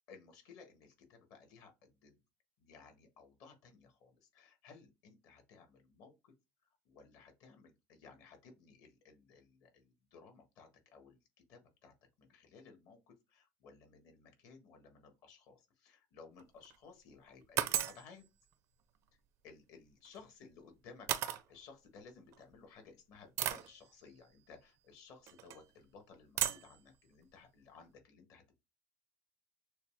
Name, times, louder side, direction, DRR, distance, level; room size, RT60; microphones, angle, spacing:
voice 1, 0.1-2.1 2.6-6.3 6.8-11.2 11.5-18.2 19.4-28.6, left 5 dB, 50° left, 1.4 m, -58 dB
sound 1, 16.4-16.8 17.6-18.0 20.1-20.2 21.1-21.4 22.3-22.4 23.4-23.7 25.3-25.6 26.4-26.7, right 12 dB, 40° right, 0.4 m, -34 dB
6.4 x 2.4 x 3.3 m
cardioid pair, 175°, 7 cm